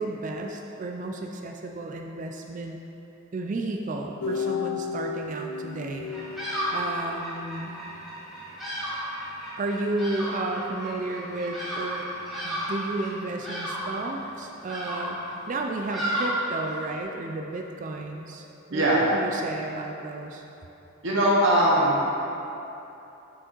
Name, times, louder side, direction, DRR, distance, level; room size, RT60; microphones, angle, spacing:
voice 1, 0.0-2.8 3.3-6.1 6.7-7.9 9.6-12.1 12.4-18.4 18.7-18.8 19.1-20.4, right 2 dB, 35° right, 2 dB, 0.3 m, -32 dB
sound 1, 4.2-7.5, left 6 dB, 85° left, 0.4 m, -33 dB
Bird vocalization bird call bird song, 6.0-17.0, equal, ahead, 1.5 m, -33 dB
voice 2, 18.7-19.1 21.0-22.2, right 1 dB, 60° right, -5 dB, 1.1 m, -21 dB
6.3 x 4.7 x 4.5 m, 3.0 s
head